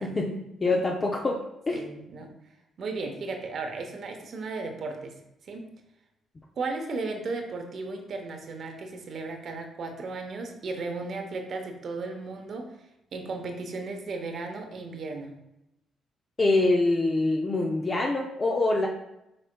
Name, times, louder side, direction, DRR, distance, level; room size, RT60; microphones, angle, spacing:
voice 1, 0.0-1.4 1.7-1.8 16.4-18.9, left 2 dB, 35° left, 0 dB, 0.6 m, -25 dB
voice 2, 1.7-2.3 2.8-5.1 5.4-5.7 6.6-12.7 13.1-15.3, right 3 dB, 60° right, 4 dB, 0.8 m, -35 dB
5.2 x 4.1 x 2.2 m, 0.87 s
supercardioid pair, 60°, 0 cm